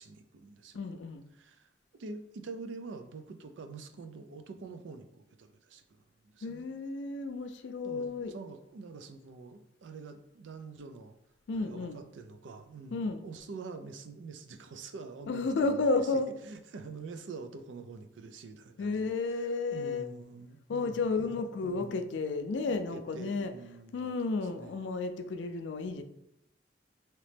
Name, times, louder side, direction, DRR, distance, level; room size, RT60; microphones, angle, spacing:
voice 1, 0.0-0.8 1.3-1.7 2.0-5.8 6.2-6.7 7.8-11.1 11.5-22.0 22.7-24.8, right 4 dB, 85° right, 7 dB, 0.4 m, -46 dB
voice 2, 0.7-1.2 6.4-8.3 11.5-12.0 12.9-13.2 15.3-16.3 18.8-20.1 20.7-23.5 23.9-26.0, left 3 dB, 75° left, 8 dB, 0.4 m, -32 dB
3.1 x 2.9 x 3.2 m, 0.80 s
head